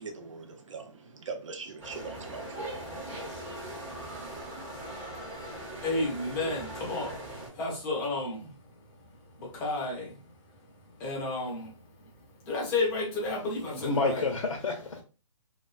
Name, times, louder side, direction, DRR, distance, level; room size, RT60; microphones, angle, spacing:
voice 1, 0.0-3.3, right 4 dB, 65° right, 0.7 m, -42 dB
sound 1, 1.8-7.5, right 1 dB, 10° right, 0.8 m, -40 dB
voice 2, 5.5-14.3, left 2 dB, 15° left, 0.5 m, -33 dB
voice 3, 13.7-15.0, left 3 dB, 80° left, 0.6 m, -29 dB
2.3 x 2.2 x 2.4 m
hypercardioid pair, 150°, 17 cm